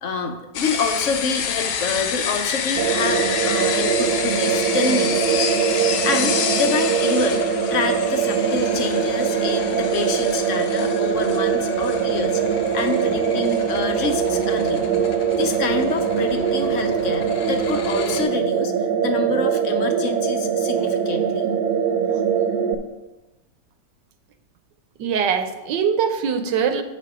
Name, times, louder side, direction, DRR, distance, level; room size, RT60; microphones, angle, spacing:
voice 1, 0.0-7.4 7.7-14.9 15.4-18.7 19.0-21.5, left 4 dB, 60° left, 6 dB, 0.9 m, -27 dB
sound 1, 0.5-18.2, left 7 dB, 85° left, 1.4 m, -29 dB
sound 2, 2.8-22.7, right 7 dB, 65° right, 1.3 m, -22 dB
voice 2, 25.0-26.8, right 7 dB, 80° right, 8 dB, 1.3 m, -22 dB
8.1 x 6.0 x 4.8 m, 1.1 s
omnidirectional pair, 1.9 m